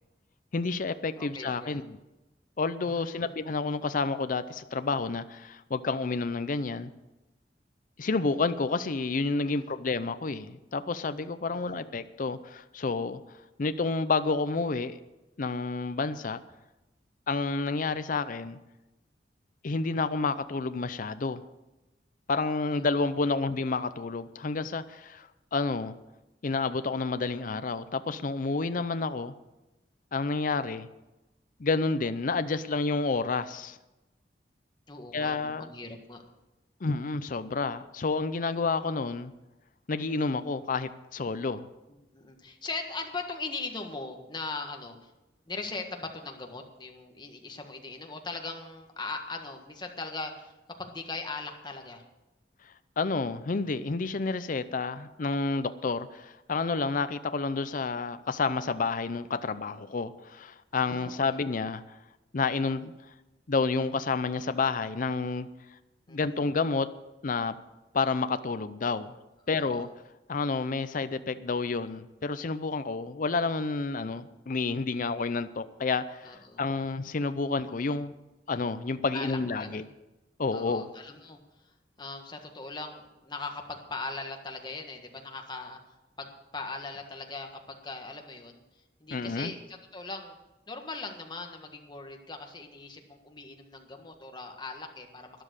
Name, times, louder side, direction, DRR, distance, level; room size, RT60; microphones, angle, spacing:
voice 1, 0.5-1.8 2.6-6.9 8.0-13.2 13.6-15.0 15.4-16.4 17.3-18.6 19.6-21.4 22.3-25.9 26.4-29.3 30.1-30.9 31.6-33.8 35.1-35.7 36.8-39.3 39.9-41.7 53.0-61.8 62.3-62.9 63.5-65.5 66.1-66.9 67.2-67.5 67.9-69.1 69.5-69.9 70.3-78.1 78.5-79.8 80.4-80.8 89.1-89.5, left 4 dB, 50° left, 0.6 m, -30 dB
voice 2, 1.2-1.8 2.8-3.3 9.4-9.7 10.0-10.1 11.5-11.8 22.7-23.1 34.9-36.2 42.1-45.1 45.4-50.5 50.8-52.0 55.4-55.7 60.7-61.4 66.1-66.3 69.5-69.9 76.2-76.6 79.1-79.8 80.5-90.4 90.7-95.4, left 3 dB, 25° left, 1.6 m, -40 dB
12.5 x 11.0 x 6.5 m
head